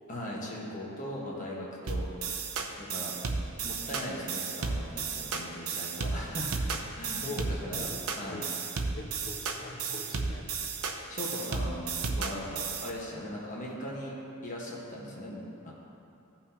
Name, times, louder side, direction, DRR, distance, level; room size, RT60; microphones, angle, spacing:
voice 1, 0.1-2.1 2.8-3.2 3.6-7.2 7.5-7.9 8.1-8.4 11.1-14.1 14.4-15.7, left 1 dB, 35° left, -4 dB, 1.3 m, -39 dB
sound 1, 1.9-12.9, right 4 dB, 80° right, 0.7 m, -33 dB
voice 2, 7.2-8.0 8.3-8.5 9.0-10.5, left 2 dB, 70° left, -3 dB, 1.3 m, -41 dB
15.5 x 5.8 x 2.9 m, 2.6 s
head